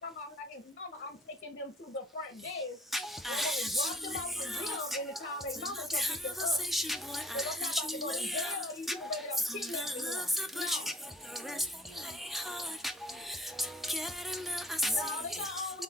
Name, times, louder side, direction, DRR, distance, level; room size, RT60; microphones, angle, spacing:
voice 1, 0.0-2.8 3.3-6.7 7.3-10.9 14.8-15.8, left 2 dB, 40° left, 0.6 m, -39 dB
voice 2, 2.9-3.9 4.5-4.8 5.9-8.5 9.6-10.8 11.4-11.6 12.2-12.7 13.6-14.9, left 1 dB, ahead, 0.3 m, -33 dB
voice 3, 7.4-7.9 9.8-10.1 10.6-13.3, right 1 dB, 70° right, 1.9 m, -59 dB
4.1 x 3.8 x 2.8 m
head